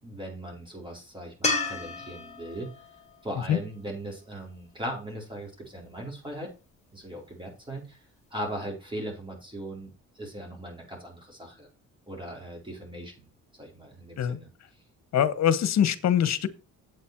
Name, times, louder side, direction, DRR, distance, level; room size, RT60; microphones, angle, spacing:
voice 1, 0.0-2.7 3.2-6.5 6.9-8.0 8.3-9.9 10.1-11.7 12.1-13.3 13.6-14.5, right 1 dB, 15° right, 4.4 m, -38 dB
sound 1, 1.4-4.7 7.9-8.0, left 3 dB, 20° left, 2.8 m, -33 dB
voice 2, 15.1-16.5, left 9 dB, 60° left, 1.1 m, -23 dB
8.4 x 8.0 x 4.6 m
cardioid pair, 90°, 30 cm